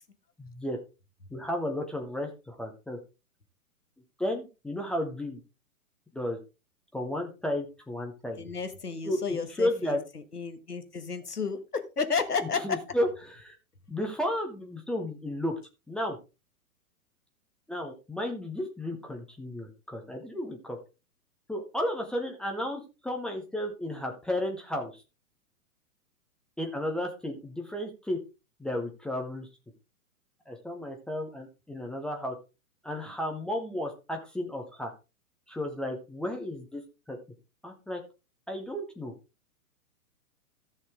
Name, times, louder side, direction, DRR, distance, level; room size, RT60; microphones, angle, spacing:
voice 1, 0.4-0.8 1.3-3.0 4.2-5.4 6.1-6.4 6.9-8.4 9.0-10.0 12.6-13.6 13.9-15.5 15.9-16.2 17.7-20.8 21.5-25.0 26.6-28.2 28.6-29.5 30.5-32.3 32.8-34.9 35.5-36.8 37.1-37.2 37.6-38.0 38.5-39.1, left 1 dB, ahead, 1 dB, 0.5 m, -33 dB
voice 2, 8.4-10.0 10.3-12.8, left 5 dB, 85° left, 9 dB, 1.6 m, -32 dB
14.0 x 6.5 x 3.5 m, 0.29 s
figure-of-eight pair, 115°, 45 cm